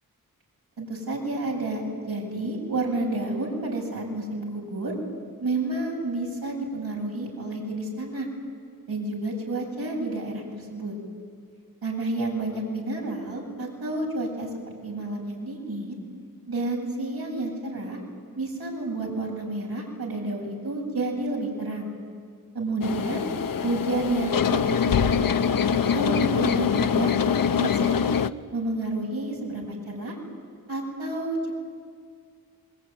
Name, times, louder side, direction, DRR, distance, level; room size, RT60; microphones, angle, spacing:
voice 1, 0.8-4.9 5.4-8.3 8.9-10.9 11.8-14.5 14.8-16.0 16.5-18.0 18.3-21.9 22.5-23.2 23.6-25.3 25.7-27.2 27.5-28.3 28.5-30.2 30.7-31.6, right 2 dB, 80° right, -2 dB, 8.0 m, -30 dB
sound 1, 22.8-28.3, left 7 dB, 70° left, 0.8 m, -24 dB
27.0 x 22.0 x 9.5 m, 2.1 s
cardioid pair, 60°, 36 cm